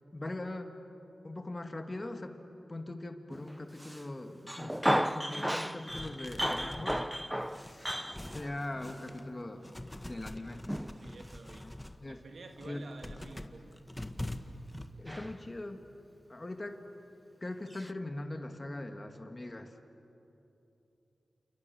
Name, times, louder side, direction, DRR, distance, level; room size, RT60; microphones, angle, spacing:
voice 1, 0.1-0.8 1.2-2.4 2.7-7.0 7.5-9.6 10.0-10.6 12.0-12.2 12.7-12.8 15.0-15.8 16.3-16.8 17.4-19.8, left 2 dB, 30° left, 6 dB, 2.2 m, -41 dB
Male speech man speaking, 3.3-4.1 4.5-8.7 10.7-11.0 11.2-11.4 15.1-15.5 17.7-17.9, equal, 5° right, 0.7 m, -34 dB
sound 1, 5.9-9.3 9.6-12.0 12.4-14.9, left 1 dB, 15° left, 1.6 m, -44 dB
voice 2, 11.0-11.7 12.1-13.7, right 3 dB, 70° right, 4 dB, 2.0 m, -51 dB
29.5 x 28.0 x 7.1 m, 2.9 s
cardioid pair, 55°, 0 cm